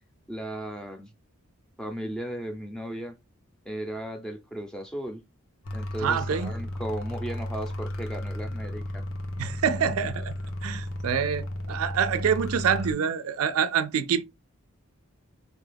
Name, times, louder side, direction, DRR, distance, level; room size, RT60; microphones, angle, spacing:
voice 1, 0.3-1.1 1.8-3.2 3.7-5.2 5.7-9.0, right 1 dB, 5° left, 0.5 m, -36 dB
sound 1, 5.6-12.9, left 1 dB, 75° left, 0.8 m, -34 dB
voice 2, 6.0-6.5 9.4-10.3 10.6-14.2, right 7 dB, 85° right, 0.4 m, -26 dB
4.3 x 2.3 x 3.3 m
head